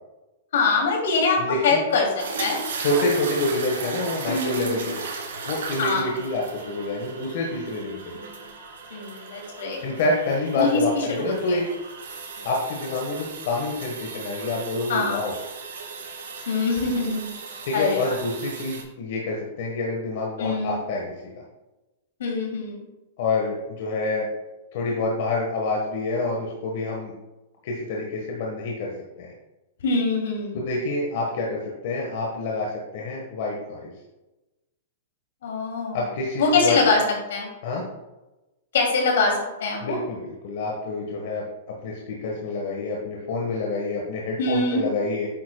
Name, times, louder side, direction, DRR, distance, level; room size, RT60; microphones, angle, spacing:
voice 1, 0.5-2.6 4.3-5.0 5.8-6.1 8.1-8.4 8.9-9.8 10.5-11.6 14.9-15.2 16.5-17.2 17.7-18.2 20.4-20.8 22.2-22.9 29.8-30.6 35.4-36.0 36.4-37.0 37.3-37.5 38.7-40.0 44.4-44.8, left 3 dB, 80° left, 0 dB, 2.7 m, -24 dB
voice 2, 1.4-1.8 2.8-5.0 5.5-8.2 9.8-11.6 12.4-15.3 17.6-21.0 21.4-21.5 23.2-24.3 24.7-27.1 27.6-28.9 29.2-29.3 30.5-33.9 35.9-36.8 37.6-37.8 39.8-41.4 41.8-45.3, left 2 dB, 55° left, -2 dB, 1.4 m, -27 dB
sound 1, 2.2-18.8, right 4 dB, 85° right, 2.6 m, -36 dB
9.2 x 7.4 x 2.3 m, 1.0 s
supercardioid pair, 155°, 0 cm